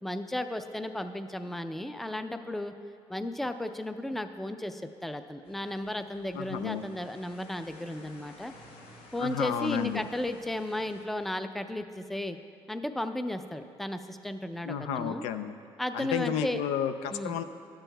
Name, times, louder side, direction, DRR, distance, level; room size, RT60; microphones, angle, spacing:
voice 1, 0.0-2.7 3.1-8.5 9.1-12.4 12.7-15.2 15.8-16.6 17.1-17.3, left 1 dB, ahead, 9 dB, 0.4 m, -34 dB
sound 1, 5.4-11.0, left 2 dB, 65° left, 1.0 m, -53 dB
voice 2, 6.3-6.8 9.2-10.0 14.7-15.5 15.9-17.4, left 8 dB, 90° left, 10 dB, 0.4 m, -31 dB
12.5 x 8.9 x 2.3 m, 2.3 s
cardioid pair, 90°, 11 cm